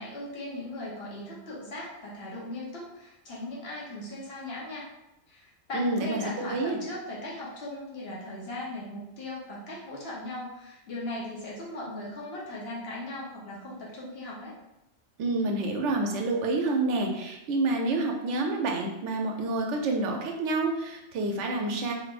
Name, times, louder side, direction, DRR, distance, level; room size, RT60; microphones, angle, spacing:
voice 1, 0.0-4.9 5.3-14.5, left 1 dB, 50° left, -5 dB, 1.1 m, -38 dB
voice 2, 5.7-6.2 6.5-6.8 15.2-21.9, right 2 dB, 70° right, 2 dB, 0.9 m, -28 dB
3.3 x 2.9 x 2.4 m, 0.89 s
omnidirectional pair, 1.4 m